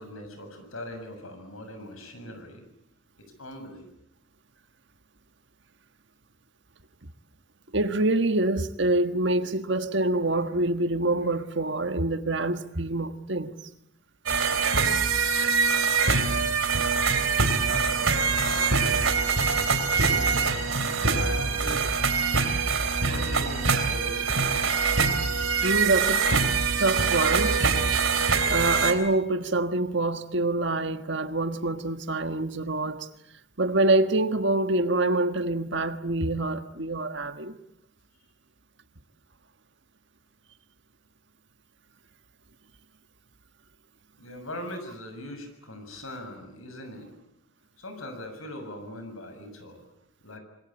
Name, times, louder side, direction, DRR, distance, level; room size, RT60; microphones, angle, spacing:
voice 1, 0.0-2.6 3.4-3.8 17.6-21.8 23.0-24.7 26.6-26.7 44.2-47.1 47.8-49.9 50.2-50.4, left 1 dB, 80° left, 6.8 m, -40 dB
voice 2, 7.7-13.7 25.6-26.3 26.8-27.6 28.5-33.1 33.6-37.5, right 2 dB, 60° right, 1.5 m, -26 dB
sound 1, 14.3-28.9, right 5 dB, 75° right, 3.6 m, -24 dB
26.5 x 22.0 x 8.8 m
head